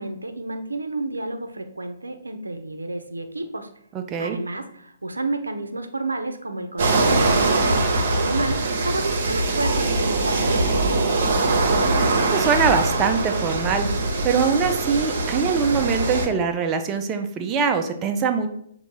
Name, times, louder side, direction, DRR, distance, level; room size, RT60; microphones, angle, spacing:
voice 1, 0.0-3.7 4.2-11.7, right 2 dB, 80° right, 7 dB, 0.5 m, -31 dB
voice 2, 3.9-4.4 12.3-13.9 14.2-18.5, right 5 dB, 20° right, 5 dB, 0.4 m, -23 dB
sound 1, 6.8-16.3, right 2 dB, 50° right, 0.8 m, -22 dB
6.4 x 2.6 x 2.9 m, 0.70 s
figure-of-eight pair, 125°, 0 cm